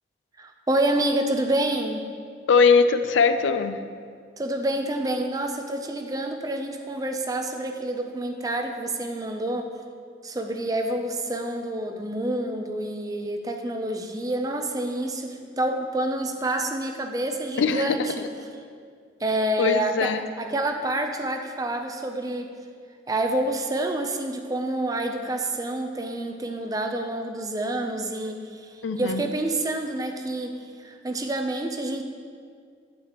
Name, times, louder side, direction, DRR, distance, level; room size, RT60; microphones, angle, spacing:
voice 1, 0.4-2.1 4.4-9.7 10.2-18.2 19.2-22.5 23.1-30.5 30.8-32.0, right 1 dB, 20° right, 5 dB, 0.5 m, -28 dB
voice 2, 2.5-3.8 17.6-18.0 19.6-20.2 28.8-29.2, left 5 dB, 80° left, 10 dB, 0.4 m, -20 dB
9.0 x 8.7 x 3.0 m, 2.1 s
head